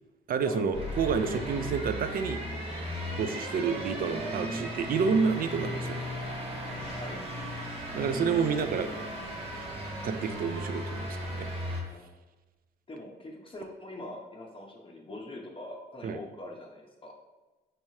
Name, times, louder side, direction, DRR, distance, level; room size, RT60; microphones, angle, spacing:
voice 1, 0.3-2.4 3.2-6.0 7.9-8.9 9.5-9.6 10.0-11.5 16.0-16.2, right 5 dB, 50° right, 10 dB, 0.4 m, -29 dB
sound 1, 0.7-11.8, equal, 30° right, 1.3 m, -36 dB
voice 2, 12.9-17.1, left 1 dB, 25° left, 0 dB, 0.7 m, -43 dB
4.6 x 3.0 x 2.8 m, 1.2 s
cardioid pair, 90°, 20 cm